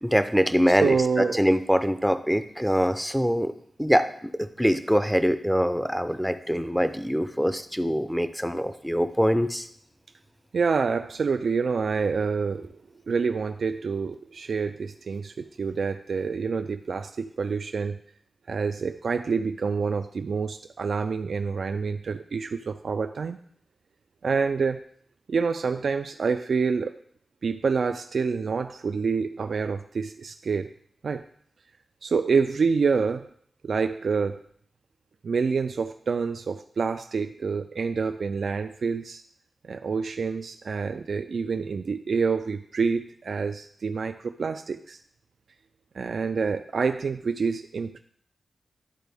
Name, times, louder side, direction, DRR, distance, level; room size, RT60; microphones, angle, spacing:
voice 1, 0.0-3.5 3.8-9.7, equal, ahead, 10 dB, 0.5 m, -24 dB
voice 2, 0.7-1.4 10.5-12.7 13.1-18.0 18.5-23.4 24.2-24.8 25.3-27.0 27.4-30.7 31.0-31.2 32.0-33.3 33.6-34.4 35.2-39.2 39.7-45.0 46.0-48.0, right 5 dB, 70° right, 7 dB, 0.3 m, -27 dB
12.0 x 4.1 x 3.5 m, 0.62 s
wide cardioid pair, 85°, 0 cm